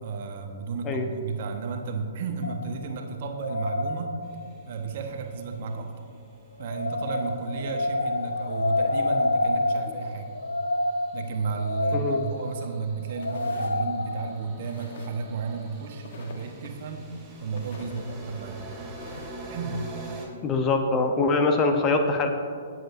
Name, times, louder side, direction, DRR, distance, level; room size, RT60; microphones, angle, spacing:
voice 1, 0.0-4.2 4.7-5.9 6.6-10.3 11.1-17.1 17.4-18.6 19.5-19.9, right 5 dB, 50° right, 4 dB, 1.1 m, -33 dB
sound 1, 2.4-4.7 6.6-14.3, left 2 dB, 80° left, 0.4 m, -28 dB
sound 2, 4.2-8.6 10.1-20.3, right 2 dB, 15° right, 2.8 m, -46 dB
voice 2, 11.9-12.3 20.4-22.3, left 3 dB, 25° left, 5 dB, 0.9 m, -23 dB
sound 3, 13.2-13.8 14.6-15.2 16.0-16.7 17.6-18.1 18.9-19.3, left 3 dB, 55° left, 1.2 m, -46 dB
18.0 x 7.7 x 2.6 m, 2.2 s
figure-of-eight pair, 115°, 0 cm